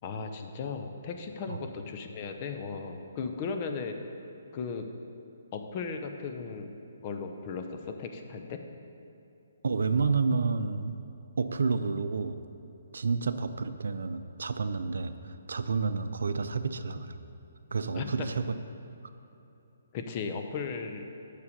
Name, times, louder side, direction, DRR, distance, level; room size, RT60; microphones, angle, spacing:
voice 1, 0.0-4.0 4.5-4.9 5.5-6.7 7.0-8.6 17.9-18.3 19.9-21.1, left 5 dB, 35° left, 5 dB, 0.8 m, -36 dB
voice 2, 9.6-11.0 11.4-12.4 12.9-17.2 17.7-18.5, right 4 dB, 80° right, 11 dB, 0.5 m, -30 dB
9.8 x 6.7 x 5.3 m, 2.8 s
hypercardioid pair, 150°, 0 cm